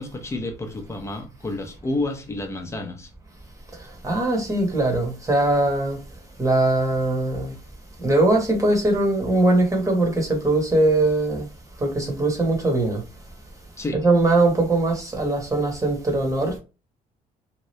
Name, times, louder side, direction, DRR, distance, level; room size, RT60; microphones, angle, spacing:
voice 1, 0.0-3.1 13.8-14.0, left 2 dB, 15° left, 0.8 m, -30 dB
voice 2, 3.8-6.0 6.4-7.5 8.0-11.5 11.8-13.0 14.0-16.6, right 2 dB, 20° right, 1.2 m, -21 dB
2.9 x 2.5 x 3.1 m
cardioid pair, 110°, 17 cm